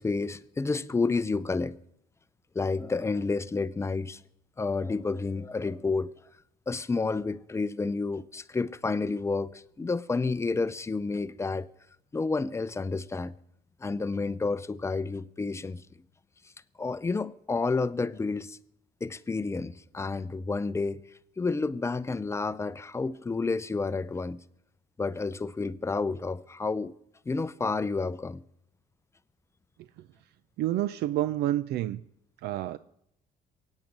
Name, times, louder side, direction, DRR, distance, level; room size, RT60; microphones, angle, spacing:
voice 1, 0.0-1.8 2.5-4.2 4.6-6.1 6.7-11.7 12.1-13.3 13.8-15.8 16.8-18.6 19.0-21.1 21.4-24.4 25.0-26.9 27.3-28.4, left 3 dB, 15° left, 0.5 m, -30 dB
voice 2, 30.6-32.0 32.4-32.8, right 14 dB, 75° right, 0.5 m, -28 dB
23.5 x 9.0 x 5.3 m
cardioid pair, 110°, 17 cm